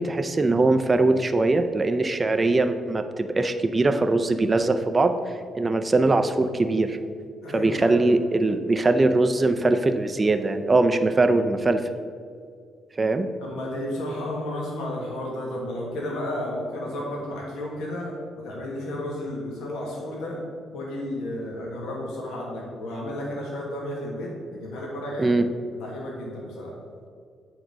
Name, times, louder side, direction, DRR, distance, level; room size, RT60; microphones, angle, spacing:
voice 1, 0.0-5.2 5.5-7.0 7.5-11.8 13.0-13.3 25.2-25.5, right 2 dB, 25° right, 7 dB, 0.5 m, -21 dB
voice 2, 7.4-8.0 13.4-20.4 20.7-25.3 25.8-26.8, left 1 dB, 85° left, -2 dB, 1.5 m, -32 dB
8.0 x 3.9 x 6.2 m, 2.2 s
cardioid pair, 90°, 0 cm